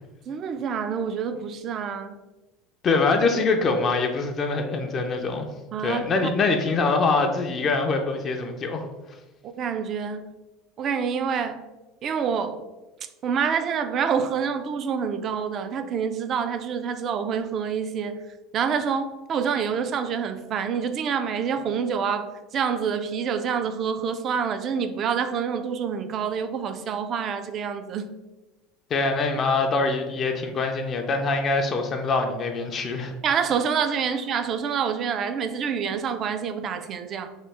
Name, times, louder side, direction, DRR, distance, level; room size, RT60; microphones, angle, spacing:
voice 1, 0.3-2.2 5.7-6.3 9.4-10.3 10.8-11.6 12.0-12.6 13.2-18.2 18.5-28.1 33.2-37.3, right 6 dB, 40° right, 0.3 m, -27 dB
voice 2, 2.8-5.5 5.8-8.8 28.9-33.1, left 3 dB, 35° left, 0.4 m, -24 dB
2.9 x 2.4 x 3.4 m
supercardioid pair, 115°, 0 cm